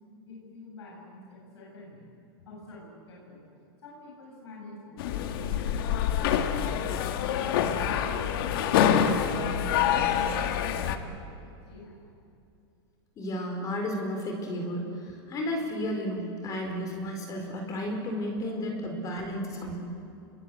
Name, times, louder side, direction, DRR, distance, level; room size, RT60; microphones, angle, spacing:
voice 1, 0.2-2.1 2.4-3.4 3.8-6.9 7.6-12.0, left 2 dB, 85° left, -3 dB, 7.8 m, -48 dB
sound 1, 5.0-11.0, left 8 dB, 60° left, 1.8 m, -26 dB
voice 2, 13.2-19.8, equal, 25° left, 3 dB, 4.4 m, -33 dB
28.5 x 22.0 x 8.3 m, 2.6 s
supercardioid pair, 145°, 14 cm